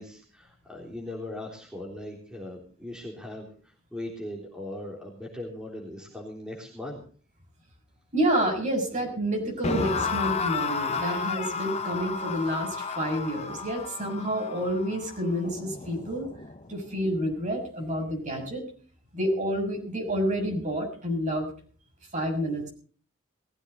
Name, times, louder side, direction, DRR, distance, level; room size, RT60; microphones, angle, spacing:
voice 1, 0.0-7.0, left 1 dB, 5° right, -1 dB, 3.6 m, -39 dB
voice 2, 8.1-16.3 16.7-18.6 19.1-21.5 22.1-22.7, equal, 35° right, 2 dB, 6.7 m, -29 dB
sound 1, 9.6-16.7, left 4 dB, 30° left, 1.0 m, -32 dB
20.0 x 15.0 x 4.0 m, 0.42 s
head